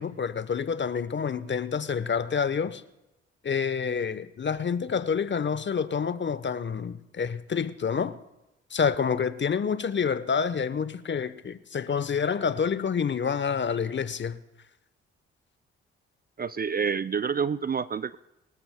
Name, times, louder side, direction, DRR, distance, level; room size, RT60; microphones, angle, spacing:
voice 1, 0.0-2.8 3.4-8.2 8.7-14.4, left 6 dB, 35° left, 0.9 m, -28 dB
voice 2, 16.4-18.2, right 6 dB, 30° right, 0.5 m, -28 dB
26.0 x 13.0 x 2.2 m
hypercardioid pair, 40°, 31 cm